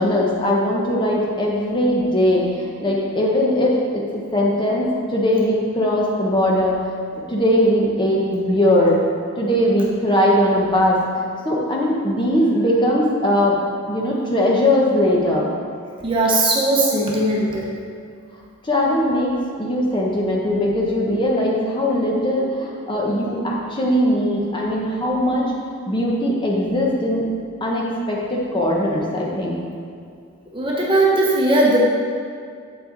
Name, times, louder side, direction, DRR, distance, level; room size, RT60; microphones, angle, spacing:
voice 1, 0.0-6.9 7.3-9.0 9.4-15.5 18.6-25.5 25.9-27.3 27.6-29.6, left 1 dB, 20° left, -3 dB, 1.0 m, -20 dB
voice 2, 16.0-17.7 30.5-31.8, right 2 dB, 25° right, -3 dB, 1.0 m, -18 dB
8.3 x 5.7 x 3.9 m, 2.2 s
head